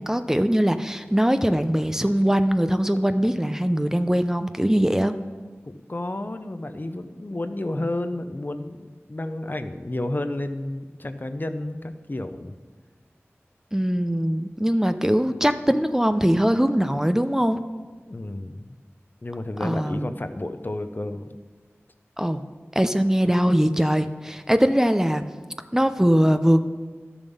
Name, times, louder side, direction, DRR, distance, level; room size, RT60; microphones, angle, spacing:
voice 1, 0.0-5.1 13.7-17.6 19.6-20.1 22.2-22.4 22.7-25.2 25.7-26.6, equal, 10° right, 9 dB, 0.5 m, -21 dB
voice 2, 5.7-12.6 18.1-18.8 19.2-21.3, left 1 dB, 40° left, 9 dB, 0.7 m, -31 dB
12.0 x 7.0 x 5.4 m, 1.4 s
wide cardioid pair, 40°, 5 cm